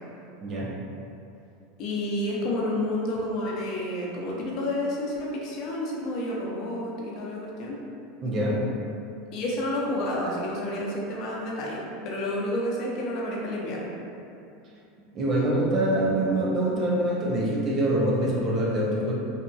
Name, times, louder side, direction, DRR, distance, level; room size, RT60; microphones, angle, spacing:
voice 1, 0.4-0.7 8.2-8.6 15.1-19.1, right 1 dB, 40° right, -4 dB, 0.5 m, -25 dB
voice 2, 1.8-7.8 9.3-13.9, left 1 dB, 55° left, -3 dB, 0.6 m, -30 dB
2.7 x 2.6 x 2.2 m, 2.7 s
hypercardioid pair, 100°, 0 cm